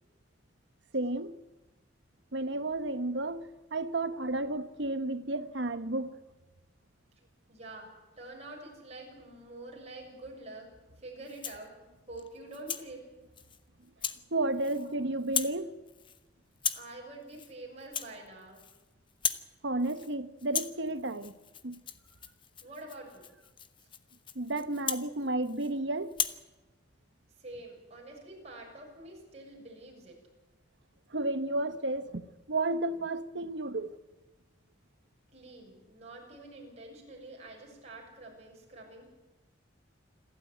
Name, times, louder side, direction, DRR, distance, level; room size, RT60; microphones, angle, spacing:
voice 1, 0.9-1.4 2.3-6.2 14.3-15.7 19.6-21.3 21.6-21.8 24.3-26.1 31.1-33.9, right 2 dB, 65° right, 1.1 m, -32 dB
voice 2, 2.8-3.2 7.5-7.9 8.2-10.7 11.0-11.7 12.1-13.1 14.8-14.9 16.7-18.7 22.6-23.2 27.4-30.2 35.3-39.1, right 2 dB, 35° right, 6.7 m, -47 dB
Rattle (instrument), 11.2-11.7 12.2-12.9 13.4-13.6 14.0-14.2 14.5-14.9 15.2-15.6 15.9-16.2 16.6-16.9 17.3-17.5 17.8-18.8 19.1-19.5 19.8-20.1 20.4-25.7 26.1-26.4, left 8 dB, 25° left, 1.0 m, -37 dB
27.5 x 13.0 x 9.3 m
head